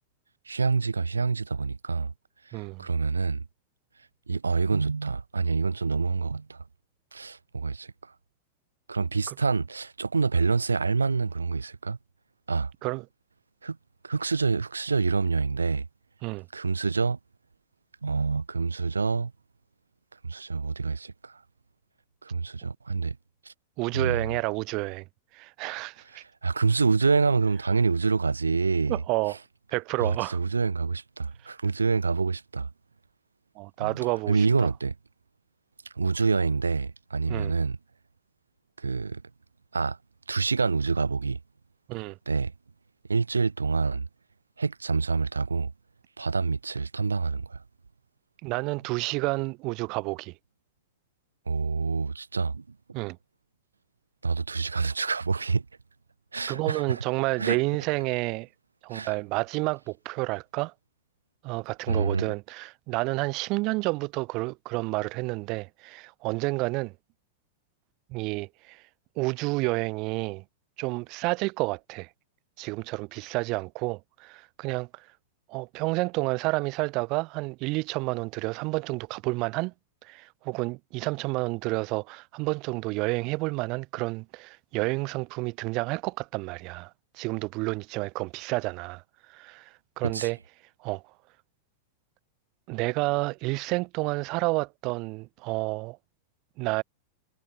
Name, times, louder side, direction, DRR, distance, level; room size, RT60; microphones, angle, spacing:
voice 1, 0.5-2.1 2.5-3.4 4.3-6.6 7.1-7.9 8.9-12.0 12.5-12.7 13.6-13.8 14.0-15.8 16.5-17.2 18.0-19.3 20.2-21.4 22.2-23.2 23.5-23.6 23.9-24.3 26.1-29.0 30.0-32.7 33.8-34.0 34.3-34.9 36.0-37.8 38.8-39.2 39.7-40.0 40.3-41.4 42.3-42.5 43.1-44.1 44.6-45.7 46.2-47.6 51.5-52.6 54.2-55.6 56.3-57.0 57.4-57.6 58.9-59.1 61.9-62.3 90.1-90.3, right 4 dB, 75° right, 0.6 m, -27 dB
voice 2, 2.5-2.8 9.3-9.4 12.8-13.0 16.2-16.5 23.8-25.0 25.3-26.2 28.9-29.4 29.7-30.4 33.6-34.5 37.3-37.5 41.9-42.2 48.4-50.3 52.9-53.2 56.5-58.5 58.8-60.7 61.4-66.9 68.1-68.8 69.2-70.4 70.8-72.1 72.6-74.9 75.5-79.7 80.0-89.0 89.3-89.7 90.0-90.4 90.8-91.0 92.7-96.0 96.6-96.8, right 25 dB, 40° right, 0.7 m, -30 dB
figure-of-eight pair, 90°, 0 cm